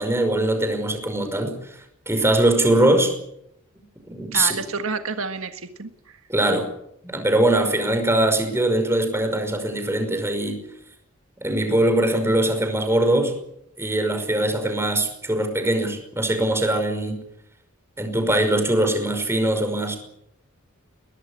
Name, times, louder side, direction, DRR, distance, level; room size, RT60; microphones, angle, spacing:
voice 1, 0.0-3.1 4.0-4.6 6.3-6.7 7.0-10.6 11.4-13.3 13.8-17.2 18.0-20.0, right 1 dB, 10° right, 6 dB, 5.5 m, -21 dB
voice 2, 4.3-5.9, right 4 dB, 65° right, 7 dB, 1.7 m, -29 dB
22.5 x 19.0 x 8.7 m, 0.76 s
head